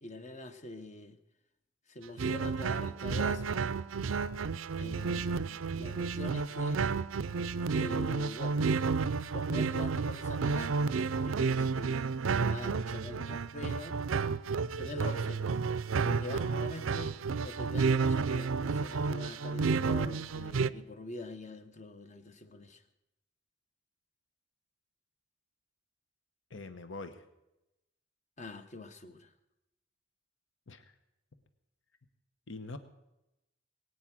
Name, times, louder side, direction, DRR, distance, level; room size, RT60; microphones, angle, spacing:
voice 1, 0.0-1.2 1.9-3.5 4.8-6.8 7.7-8.6 9.3-10.8 11.2-14.0 14.8-15.5 16.1-17.1 17.4-22.8 28.4-29.3, left 2 dB, 35° left, 9 dB, 1.1 m, -44 dB
sound 1, 2.2-20.7, right 5 dB, 85° right, 0.5 m, -31 dB
voice 2, 26.5-27.2 30.7-30.9 32.5-32.8, left 3 dB, 70° left, 10 dB, 1.1 m, -43 dB
21.0 x 9.0 x 6.2 m, 0.92 s
head